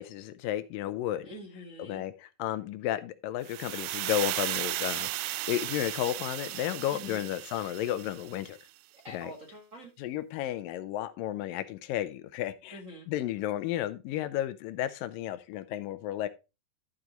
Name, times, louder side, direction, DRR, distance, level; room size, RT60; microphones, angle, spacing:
voice 1, 0.0-1.3 1.8-8.6 9.1-9.3 10.0-12.8 13.1-16.3, left 13 dB, 80° left, 2.3 m, -33 dB
voice 2, 1.2-2.0 6.9-7.3 8.9-9.9 12.7-13.1, equal, 50° right, 0.9 m, -46 dB
sound 1, 3.5-8.5, right 17 dB, 85° right, 2.3 m, -35 dB
14.0 x 5.0 x 3.9 m
omnidirectional pair, 4.1 m